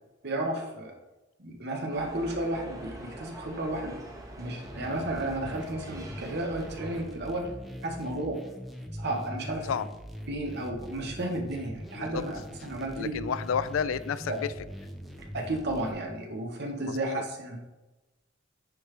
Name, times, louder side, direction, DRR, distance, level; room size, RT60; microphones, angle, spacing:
voice 1, 0.2-0.9 1.4-4.0 4.4-7.5 7.8-8.4 8.9-9.7 10.3-13.2 14.3-14.4 15.2-17.8, right 1 dB, 55° right, 2 dB, 1.1 m, -33 dB
sound 1, 1.9-7.0, right 1 dB, 15° right, 1.1 m, -44 dB
sound 2, 4.6-15.9, equal, ahead, 0.6 m, -42 dB
voice 2, 13.0-14.5 16.8-17.2, left 7 dB, 85° left, 14 dB, 0.4 m, -31 dB
9.6 x 3.3 x 3.3 m, 1.1 s
head